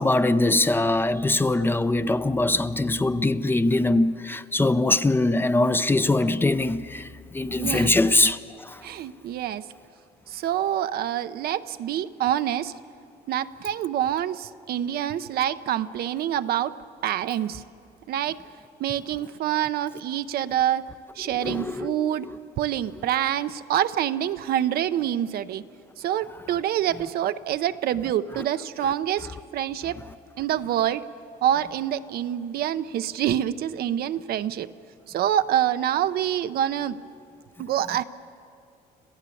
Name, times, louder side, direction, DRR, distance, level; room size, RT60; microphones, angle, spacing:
voice 1, 0.0-8.8 21.4-22.1, left 2 dB, 10° left, 0.6 m, -22 dB
voice 2, 7.6-7.9 8.8-9.6 10.3-12.7 13.3-16.7 17.0-17.6 18.1-18.4 18.8-20.8 21.2-22.3 22.6-25.6 26.0-30.0 30.4-31.1 31.4-34.7 35.1-37.0 37.6-38.0, right 11 dB, 65° right, 0.7 m, -26 dB
27.0 x 15.5 x 8.4 m
cardioid pair, 110°, 17 cm